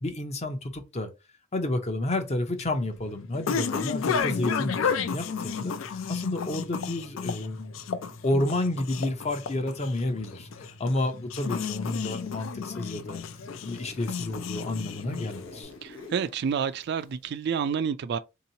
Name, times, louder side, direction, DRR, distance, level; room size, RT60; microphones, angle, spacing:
voice 1, 0.0-1.1 1.5-7.7 8.2-13.2 13.6-15.7, left 1 dB, 30° left, 0.6 m, -30 dB
sound 1, 2.1-15.7, left 6 dB, 70° left, 0.4 m, -32 dB
sound 2, 4.2-15.6, right 1 dB, 55° left, 1.2 m, -51 dB
Zipper (clothing), 11.4-12.5 12.8-17.5, left 2 dB, 90° left, 0.9 m, -46 dB
voice 2, 15.8-18.2, right 7 dB, 55° right, 0.3 m, -29 dB
3.7 x 2.8 x 2.7 m
head